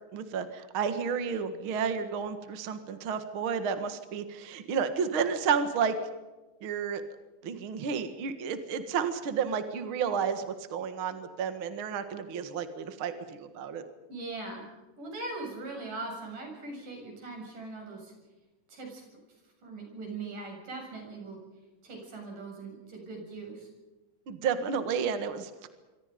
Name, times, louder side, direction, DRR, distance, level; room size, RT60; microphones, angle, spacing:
voice 1, 0.1-6.0 6.6-7.0 7.4-13.8 24.3-25.7, right 6 dB, 45° right, 9 dB, 2.1 m, -31 dB
voice 2, 14.1-14.7 15.0-18.1 18.7-19.0 19.6-21.4 21.8-23.7, right 3 dB, 90° right, 2 dB, 8.8 m, -40 dB
26.5 x 25.0 x 5.2 m, 1.1 s
omnidirectional pair, 3.6 m